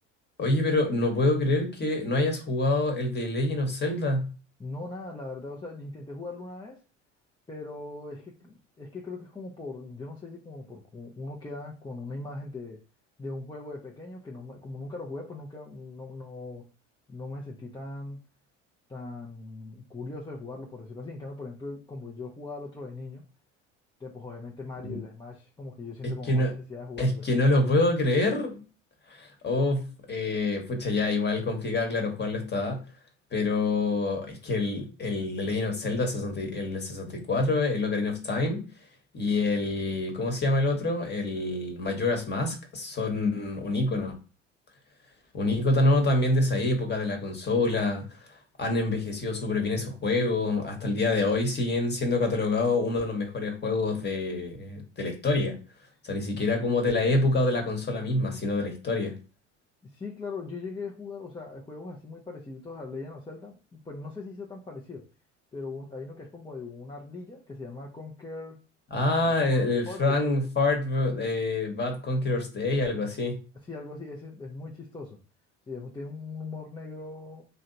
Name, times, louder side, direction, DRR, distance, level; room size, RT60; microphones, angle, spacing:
voice 1, 0.4-4.3 24.8-25.0 26.0-26.5 27.0-28.6 29.1-32.8 33.3-38.6 39.1-44.1 45.3-48.0 48.6-55.6 56.0-59.1 68.9-73.4, left 2 dB, 25° left, 3 dB, 1.2 m, -26 dB
voice 2, 4.6-6.8 7.5-12.8 13.2-16.7 17.1-18.2 18.9-23.2 24.0-27.3 59.8-65.1 65.5-68.6 69.0-70.3 73.5-75.2 75.7-77.4, left 3 dB, 10° left, -3 dB, 0.6 m, -40 dB
3.1 x 2.8 x 2.7 m, 0.34 s
hypercardioid pair, 70°, 37 cm